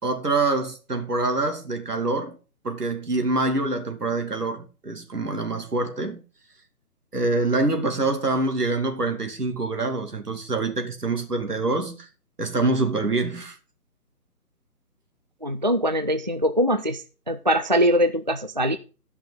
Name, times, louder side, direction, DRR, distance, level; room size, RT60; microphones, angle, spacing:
voice 1, 0.0-2.4 2.6-6.2 7.1-12.1 12.4-13.6, right 2 dB, 85° right, 2.6 m, -25 dB
voice 2, 15.4-17.0 17.3-18.8, equal, 30° right, 0.4 m, -22 dB
11.5 x 5.7 x 5.6 m
figure-of-eight pair, 145°, 46 cm